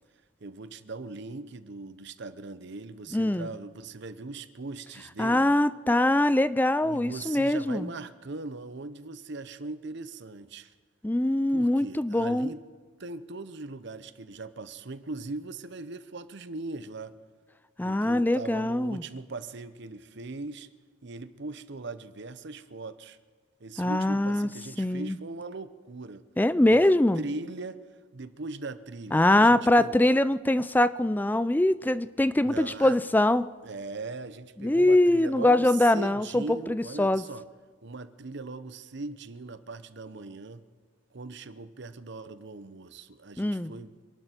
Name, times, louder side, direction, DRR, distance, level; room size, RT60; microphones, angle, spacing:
voice 1, 0.4-5.5 6.8-10.7 11.5-12.6 13.0-17.2 17.8-20.7 21.0-23.2 23.6-26.2 26.7-26.8 27.2-27.8 28.1-30.0 32.4-33.0 33.6-37.4 37.8-40.6 41.1-43.9, right 3 dB, 55° right, 0.8 m, -40 dB
voice 2, 3.1-3.5 5.2-7.9 11.0-12.5 17.8-19.0 23.8-24.5 24.8-25.1 26.4-27.2 29.1-33.5 34.6-37.2 43.4-43.7, left 1 dB, 10° left, 0.4 m, -23 dB
27.0 x 11.5 x 4.5 m
head